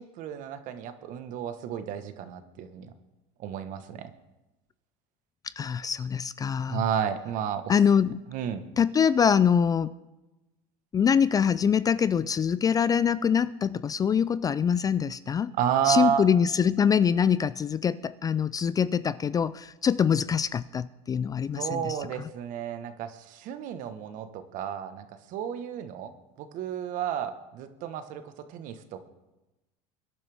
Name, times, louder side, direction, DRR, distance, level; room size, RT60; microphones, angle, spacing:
voice 1, 0.0-2.9 3.4-4.1 6.7-7.7 8.3-8.6 15.6-16.3 21.5-26.1 26.4-28.2 28.5-29.0, right 9 dB, 55° right, 10 dB, 1.3 m, -31 dB
voice 2, 5.6-6.8 7.7-8.2 8.8-9.9 10.9-15.5 15.8-22.3, left 7 dB, 25° left, 17 dB, 0.4 m, -24 dB
23.5 x 11.0 x 3.5 m, 1.0 s
supercardioid pair, 110°, 16 cm